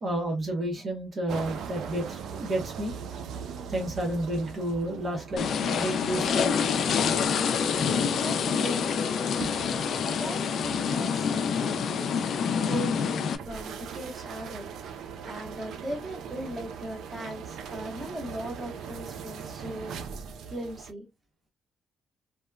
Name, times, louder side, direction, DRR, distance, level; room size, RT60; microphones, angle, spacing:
voice 1, 0.0-2.9 3.7-6.6, right 1 dB, 45° right, 0.9 m, -31 dB
sound 1, 1.3-20.9, right 7 dB, 75° right, 0.4 m, -41 dB
sound 2, 5.4-13.4, left 6 dB, 65° left, 0.4 m, -27 dB
voice 2, 8.2-9.3 9.5-14.7 15.2-19.9 20.5-21.1, equal, 15° right, 1.1 m, -39 dB
2.8 x 2.2 x 2.2 m
cardioid pair, 90°, 0 cm